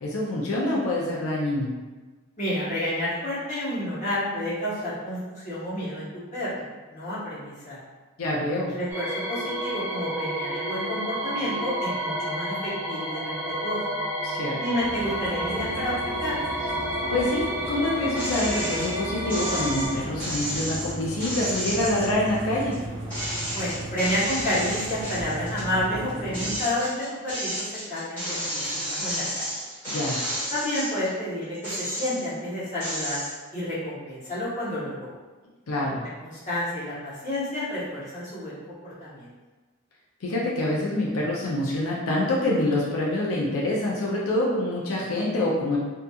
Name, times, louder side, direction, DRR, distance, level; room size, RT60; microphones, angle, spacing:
voice 1, 0.0-1.7 8.2-8.7 14.2-14.6 17.1-22.7 29.9-30.2 35.7-36.0 40.2-45.8, left 1 dB, 85° left, -4 dB, 0.5 m, -26 dB
voice 2, 2.4-6.6 6.9-7.8 8.6-13.3 13.6-13.8 14.6-16.5 23.5-26.9 27.2-27.5 27.9-29.4 30.5-33.2 33.5-35.1 36.2-39.3, left 1 dB, 35° left, -10 dB, 0.9 m, -30 dB
sound 1, 8.9-19.9, equal, 10° right, 0.4 m, -30 dB
sound 2, 14.8-26.6, right 1 dB, 70° right, 0.6 m, -36 dB
sound 3, 18.1-18.9 19.3-22.8 23.1-25.7 26.1-31.1 31.5-32.4 32.8-33.3, equal, 10° left, 1.2 m, -32 dB
2.7 x 2.4 x 2.3 m, 1.3 s
head